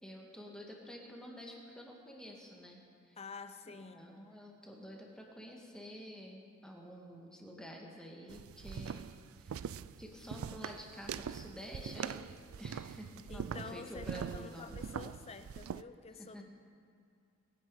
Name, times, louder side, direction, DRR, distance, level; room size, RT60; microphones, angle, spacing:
voice 1, 0.0-3.2 3.7-9.1 9.4-14.8 16.2-16.4, equal, 5° left, -1 dB, 1.9 m, -49 dB
voice 2, 3.2-4.2 13.3-16.4, left 4 dB, 30° left, 10 dB, 0.6 m, -49 dB
sound 1, 8.3-15.8, right 7 dB, 85° right, 0.4 m, -43 dB
22.5 x 10.0 x 4.9 m, 2.3 s
head